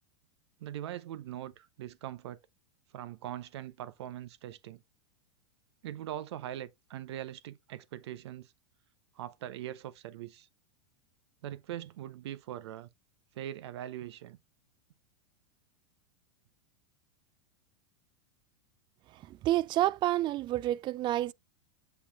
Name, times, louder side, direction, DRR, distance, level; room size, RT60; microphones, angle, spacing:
voice 1, 0.6-2.4 2.9-4.8 5.8-8.5 9.2-10.5 11.4-12.9 13.3-14.4, right 12 dB, 70° right, 0.6 m, -41 dB
voice 2, 19.4-21.3, right 14 dB, 30° right, 0.3 m, -28 dB
8.1 x 5.7 x 2.3 m
hypercardioid pair, 105°, 15 cm